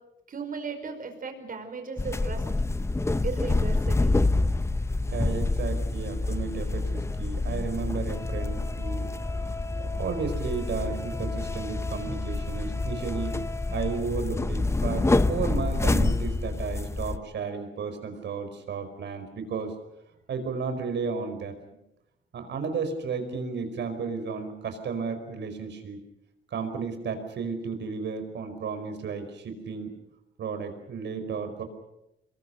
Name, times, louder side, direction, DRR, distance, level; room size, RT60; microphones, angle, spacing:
voice 1, 0.3-2.4 3.2-4.3, right 4 dB, 45° right, 6 dB, 5.0 m, -36 dB
sound 1, 2.0-17.2, left 2 dB, 15° left, 0.9 m, -27 dB
voice 2, 5.1-9.1 9.3-13.4 13.7-19.7 20.3-21.5 22.3-26.0 26.5-29.9 30.4-31.6, right 5 dB, 65° right, 8 dB, 5.1 m, -33 dB
27.0 x 22.5 x 6.5 m, 0.86 s
cardioid pair, 110°, 20 cm